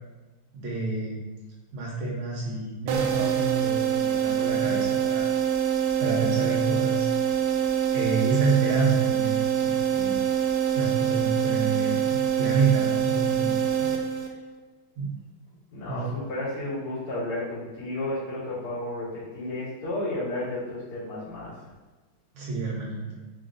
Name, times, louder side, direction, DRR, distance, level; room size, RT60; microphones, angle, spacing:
voice 1, 0.5-1.2 1.7-5.3 6.0-7.1 7.9-10.2 10.7-13.9 15.0-15.1 15.9-16.0 22.3-23.2, right 4 dB, 70° right, -4 dB, 1.6 m, -28 dB
sound 1, 2.9-14.6, right 9 dB, 90° right, 1.5 m, -25 dB
voice 2, 15.7-21.6, left 1 dB, 80° left, -12 dB, 2.6 m, -32 dB
4.9 x 2.4 x 3.8 m, 1.2 s
omnidirectional pair, 2.4 m